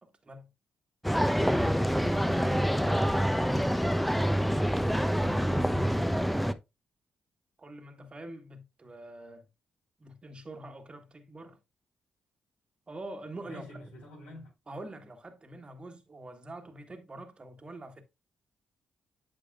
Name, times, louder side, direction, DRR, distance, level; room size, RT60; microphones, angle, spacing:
voice 1, 0.0-0.5 5.1-6.6 7.6-9.5 10.0-11.6 12.9-13.6 14.7-18.0, right 1 dB, 35° right, 1.5 m, -45 dB
sound 1, 1.0-6.5, equal, ahead, 0.7 m, -26 dB
voice 2, 13.4-14.5, equal, 85° left, 4.6 m, -49 dB
8.6 x 6.6 x 2.4 m
hypercardioid pair, 45°, 3 cm